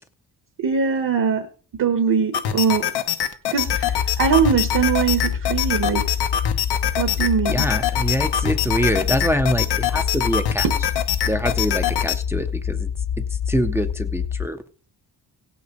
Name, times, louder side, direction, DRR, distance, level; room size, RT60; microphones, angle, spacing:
voice 1, 0.6-1.5 1.7-2.9 3.5-6.1 7.0-7.7 10.6-10.8, right 6 dB, 55° right, 1.1 m, -21 dB
sound 1, 2.3-12.2, left 10 dB, 90° left, 1.0 m, -25 dB
sound 2, 3.6-14.5, left 8 dB, 60° left, 0.7 m, -26 dB
voice 2, 7.5-10.7 11.3-12.9 13.2-14.6, equal, 5° right, 0.4 m, -25 dB
17.0 x 5.8 x 5.2 m
wide cardioid pair, 160°, 40 cm